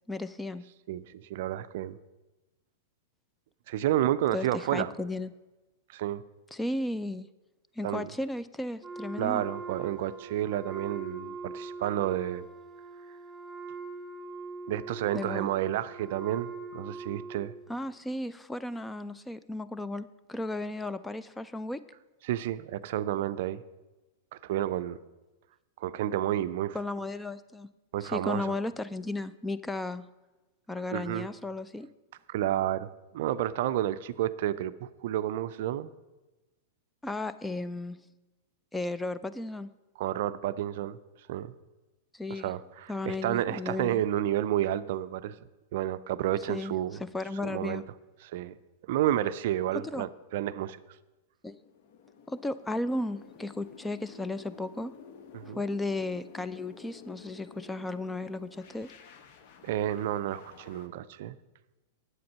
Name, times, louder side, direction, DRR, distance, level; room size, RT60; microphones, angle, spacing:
voice 1, 0.1-0.6 4.3-5.3 6.5-7.3 7.8-9.4 15.1-15.5 17.7-21.8 26.7-27.7 28.0-30.0 30.7-31.9 37.0-38.0 38.7-39.7 42.1-42.5 42.9-44.0 46.5-46.7 47.0-47.8 49.9-50.1 51.4-51.6 52.3-54.9 55.5-58.9, left 2 dB, 10° left, 14 dB, 0.4 m, -34 dB
voice 2, 0.9-2.0 3.7-4.9 5.9-6.2 7.8-8.1 9.2-12.5 14.7-17.5 22.2-23.6 24.3-25.0 25.8-26.8 27.9-28.6 30.9-31.3 32.3-35.9 40.0-41.0 41.3-41.5 42.3-45.4 45.7-47.0 47.4-47.8 48.2-48.6 48.9-50.8 55.3-55.6 59.6-61.4, right 12 dB, 60° right, 14 dB, 0.4 m, -30 dB
Wind instrument woodwind instrument, 8.8-17.6, right 4 dB, 10° right, 2.3 m, -42 dB
sound 1, 51.5-60.9, left 6 dB, 55° left, 0.9 m, -52 dB
8.0 x 7.7 x 5.4 m, 1.1 s
hypercardioid pair, 105°, 0 cm